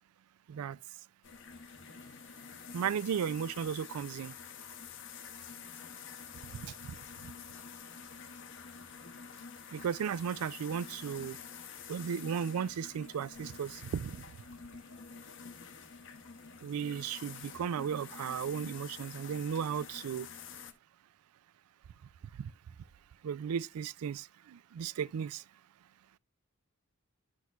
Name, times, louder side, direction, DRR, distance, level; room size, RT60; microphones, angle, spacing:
sound 1, 1.2-20.7, left 6 dB, 60° left, 0.8 m, -48 dB
voice 1, 2.7-4.3 6.6-6.7 9.7-11.4 11.9-14.2 16.6-20.3 22.4-22.5 23.2-25.4, right 7 dB, 85° right, 0.4 m, -35 dB
10.5 x 6.2 x 2.4 m
head